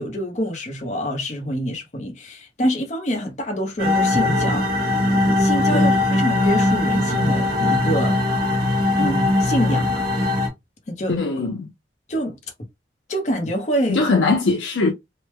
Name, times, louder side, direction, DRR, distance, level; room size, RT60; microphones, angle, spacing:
voice 1, 0.0-8.2 9.0-10.3 10.9-11.5 12.1-12.4 13.1-14.0, equal, 40° left, 0.8 m, -26 dB
sound 1, 3.8-10.5, left 2 dB, 55° right, 1.2 m, -20 dB
voice 2, 11.1-11.7 13.9-14.9, left 3 dB, 85° left, 0.6 m, -20 dB
3.2 x 2.1 x 3.1 m
head